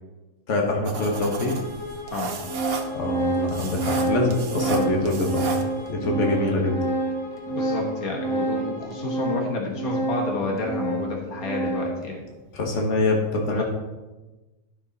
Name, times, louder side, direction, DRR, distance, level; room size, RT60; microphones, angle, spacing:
voice 1, 0.5-1.6 2.9-5.5 5.9-6.7 12.5-13.6, left 2 dB, 55° left, 0 dB, 1.8 m, -24 dB
Organ, 0.8-0.9 1.8-1.9 2.2-12.1, right 2 dB, 5° left, 1.0 m, -28 dB
sound 1, 0.8-5.9, right 6 dB, 75° right, 1.4 m, -35 dB
Bowed string instrument, 1.0-9.5, left 2 dB, 20° left, 2.8 m, -40 dB
voice 2, 7.5-12.2 13.5-13.6, left 3 dB, 75° left, 0 dB, 1.7 m, -30 dB
11.5 x 5.9 x 4.1 m, 1.1 s
omnidirectional pair, 1.5 m